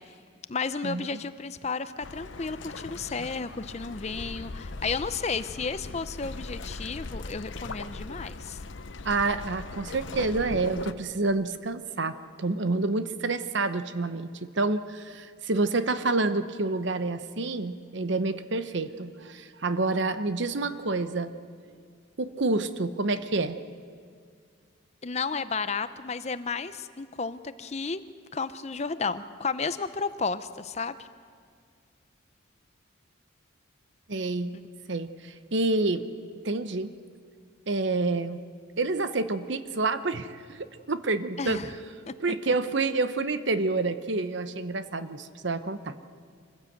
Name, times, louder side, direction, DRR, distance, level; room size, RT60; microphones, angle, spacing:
voice 1, 0.5-8.6 25.0-28.0 28.3-31.1 41.4-41.7 42.1-42.2, left 4 dB, 35° left, 13 dB, 0.6 m, -32 dB
sound 1, 2.0-10.9, left 3 dB, 65° left, 0.8 m, -39 dB
voice 2, 9.0-21.3 22.2-23.6 34.1-34.5 34.9-36.0 36.4-36.9 37.7-38.4 38.8-40.6 40.9-41.6 42.2-46.0, right 3 dB, 60° right, 11 dB, 0.9 m, -28 dB
25.0 x 15.5 x 7.9 m, 2.1 s
head